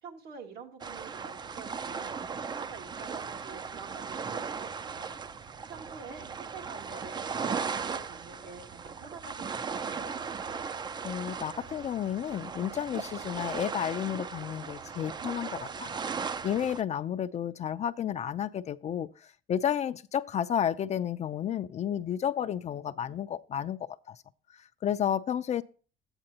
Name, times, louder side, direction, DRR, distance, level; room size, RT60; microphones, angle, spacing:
voice 1, 0.0-2.1 2.4-5.1 5.7-10.2, right 5 dB, 75° right, 1.9 m, -47 dB
sound 1, 0.8-16.8, right 5 dB, 25° right, 0.4 m, -37 dB
voice 2, 11.0-15.9 16.4-24.2 24.5-25.6, left 9 dB, 40° left, 0.4 m, -32 dB
12.0 x 8.8 x 2.8 m
cardioid pair, 110°, 17 cm